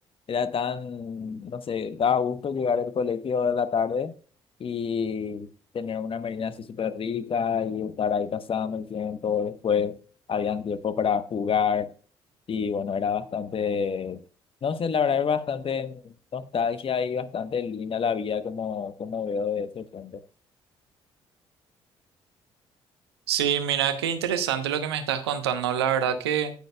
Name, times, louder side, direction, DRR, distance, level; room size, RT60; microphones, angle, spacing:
voice 1, 0.3-4.1 4.6-5.5 5.7-10.0 10.3-11.9 12.5-14.2 14.6-20.2, left 6 dB, 45° left, 1.0 m, -27 dB
voice 2, 23.3-26.5, right 9 dB, 85° right, 0.9 m, -26 dB
17.5 x 6.4 x 2.3 m
hypercardioid pair, 50°, 13 cm